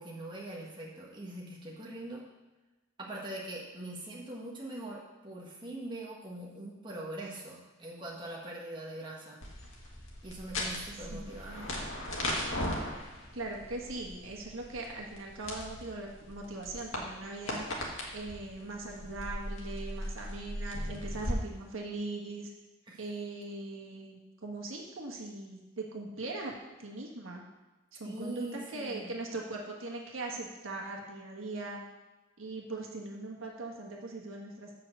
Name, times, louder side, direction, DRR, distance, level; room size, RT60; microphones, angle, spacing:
voice 1, 0.0-2.2 3.0-9.4 10.2-11.8 22.9-23.0 28.0-29.2, right 1 dB, 25° right, -4 dB, 1.4 m, -42 dB
sound 1, 9.4-21.3, left 1 dB, 75° left, 1.8 m, -38 dB
voice 2, 11.1-11.7 13.3-17.7 18.1-22.5 23.0-27.4 27.9-31.8 32.4-34.7, right 2 dB, 75° right, 0 dB, 1.5 m, -40 dB
7.5 x 5.8 x 6.6 m, 1.1 s
head